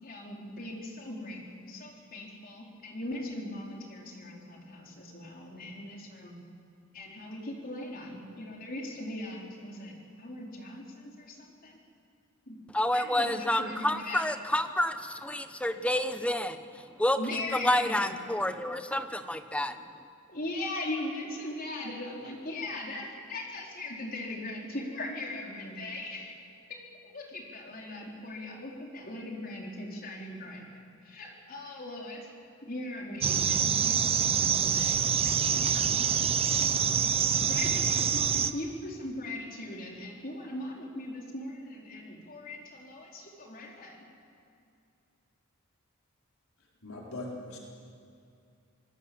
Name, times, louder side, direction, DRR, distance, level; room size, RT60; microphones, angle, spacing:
voice 1, 0.0-6.4 6.9-11.8 12.5-12.6 12.9-14.2 17.2-18.1 20.3-26.4 26.7-32.3 32.6-36.3 37.4-44.0, left 1 dB, 45° left, -1 dB, 4.4 m, -39 dB
voice 2, 12.7-17.2 17.5-19.8, left 1 dB, 5° left, 9 dB, 1.0 m, -29 dB
sound 1, 33.2-38.5, right 7 dB, 30° right, 0.7 m, -26 dB
voice 3, 46.6-47.6, left 2 dB, 90° left, -2 dB, 4.1 m, -41 dB
26.5 x 20.0 x 7.9 m, 2.4 s
head